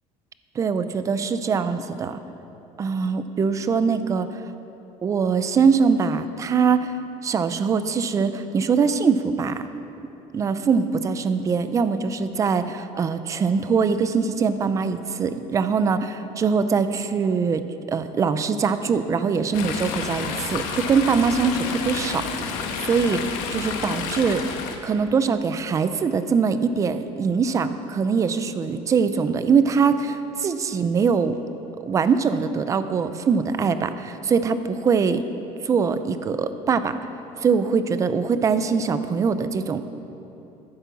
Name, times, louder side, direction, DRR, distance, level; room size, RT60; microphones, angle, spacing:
voice 1, 0.6-2.2 2.8-4.3 5.0-6.9 7.2-9.6 10.3-17.6 17.9-22.5 22.8-24.4 24.8-31.4 31.9-35.2 35.6-36.9 37.4-39.8, right 5 dB, 25° right, 11 dB, 0.5 m, -22 dB
Chatter / Stream, 19.5-24.8, left 5 dB, 90° left, 1.4 m, -30 dB
12.0 x 10.5 x 7.1 m, 2.9 s
cardioid pair, 165°, 14 cm